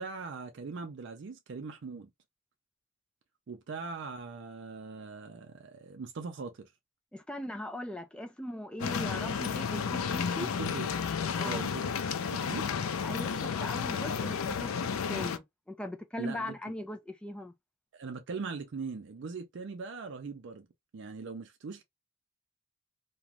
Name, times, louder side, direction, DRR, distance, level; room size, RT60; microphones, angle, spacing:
voice 1, 0.0-2.1 3.5-6.7 10.4-10.9 11.2-11.9 12.3-12.7 16.2-16.5 17.9-20.7 20.9-21.8, right 4 dB, 60° right, 0.4 m, -40 dB
voice 2, 7.1-10.5 11.4-11.7 13.0-17.5, left 1 dB, 5° left, 0.3 m, -39 dB
sound 1, 8.8-15.4, left 6 dB, 90° left, 0.4 m, -32 dB
2.5 x 2.2 x 2.9 m
head